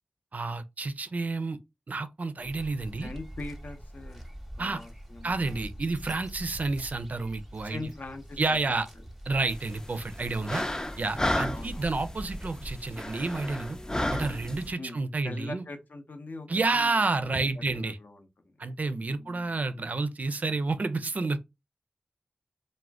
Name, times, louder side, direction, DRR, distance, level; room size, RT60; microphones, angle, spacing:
voice 1, 0.3-1.6 1.9-3.1 4.6-4.8 5.2-7.9 8.4-8.9 9.3-10.7 11.0-13.8 14.1-15.6 16.5-18.0 18.6-21.4, right 3 dB, 60° right, 0.4 m, -30 dB
sound 1, 2.4-12.7, equal, 5° right, 0.7 m, -44 dB
voice 2, 3.0-4.2 4.5-5.7 7.6-8.4 8.7-8.8 10.4-10.8 11.5-12.0 14.8-18.6 19.2-19.9, left 2 dB, 70° left, 0.6 m, -43 dB
sound 2, 9.5-14.7, left 1 dB, 20° left, 0.4 m, -33 dB
2.4 x 2.1 x 3.3 m
wide cardioid pair, 60°, 3 cm